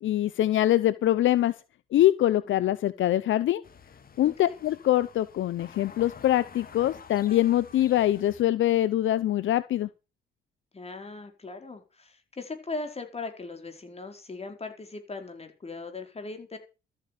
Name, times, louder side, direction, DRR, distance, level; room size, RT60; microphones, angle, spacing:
voice 1, 0.0-1.5 1.9-3.6 4.2-9.9, left 13 dB, 70° left, 16 dB, 0.7 m, -24 dB
sound 1, 3.6-8.4, left 6 dB, 45° left, 2.0 m, -49 dB
voice 2, 4.2-4.5 10.7-16.6, left 3 dB, 30° left, 6 dB, 4.6 m, -39 dB
13.5 x 8.9 x 6.7 m, 0.32 s
cardioid pair, 85°, 20 cm